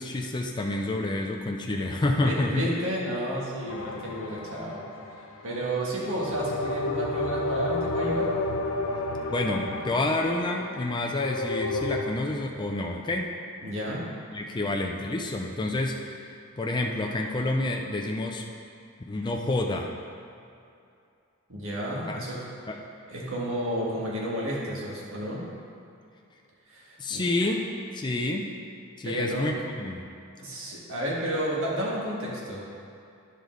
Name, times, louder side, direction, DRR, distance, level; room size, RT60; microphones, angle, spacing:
voice 1, 0.0-2.7 9.3-13.3 14.3-16.0 16.6-18.4 19.1-19.9 22.1-22.3 22.7-22.8 27.0-28.5 29.0-30.0, left 2 dB, 20° left, 1 dB, 0.5 m, -28 dB
voice 2, 2.2-4.8 5.4-8.3 13.6-14.1 21.5-22.5 23.1-25.5 26.7-27.5 29.0-29.5 30.4-32.6, right 1 dB, 65° right, -5 dB, 1.7 m, -31 dB
sound 1, 3.7-5.4 6.1-12.0, left 2 dB, 70° left, 0.7 m, -31 dB
11.0 x 5.0 x 3.9 m, 2.6 s
head